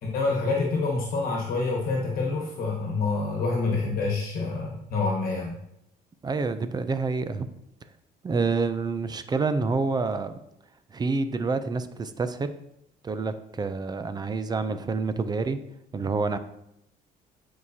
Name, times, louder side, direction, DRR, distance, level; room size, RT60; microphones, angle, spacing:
voice 1, 0.0-5.5, left 3 dB, 60° left, -2 dB, 1.4 m, -27 dB
voice 2, 6.2-7.5 8.2-10.3 10.9-12.5 13.0-15.6 15.9-16.4, right 4 dB, 25° right, 11 dB, 0.5 m, -27 dB
9.4 x 4.7 x 2.8 m, 0.80 s
cardioid pair, 110°, 17 cm